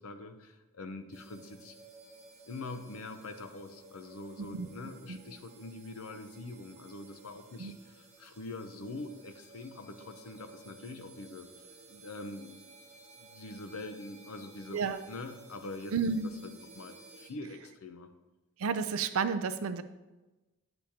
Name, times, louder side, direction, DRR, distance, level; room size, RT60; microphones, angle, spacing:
voice 1, 0.0-1.8 2.5-12.8 13.1-14.8 15.1-15.9 16.4-18.1, left 2 dB, 80° left, 8 dB, 0.7 m, -44 dB
sound 1, 1.1-17.3, right 3 dB, 35° right, 0.9 m, -55 dB
voice 2, 15.9-16.3 18.6-19.8, right 5 dB, 75° right, 12 dB, 0.5 m, -31 dB
10.0 x 6.8 x 2.8 m, 1.1 s
head